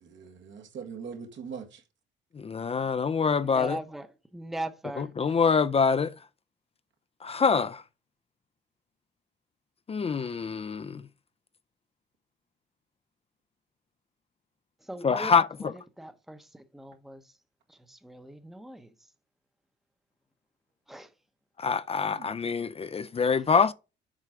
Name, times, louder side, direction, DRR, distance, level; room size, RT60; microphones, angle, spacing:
voice 1, 0.0-1.8 22.1-22.3, right 6 dB, 70° right, 1.7 m, -41 dB
voice 2, 2.4-3.8 5.0-6.1 7.2-7.8 9.9-11.0 15.0-15.7 21.6-23.7, left 5 dB, 30° left, 0.4 m, -25 dB
voice 3, 3.3-4.1 4.3-5.1 14.8-15.3 15.6-17.2 17.7-18.9 20.9-21.1, right 1 dB, ahead, 0.8 m, -40 dB
7.5 x 4.4 x 4.9 m
cardioid pair, 90°, 20 cm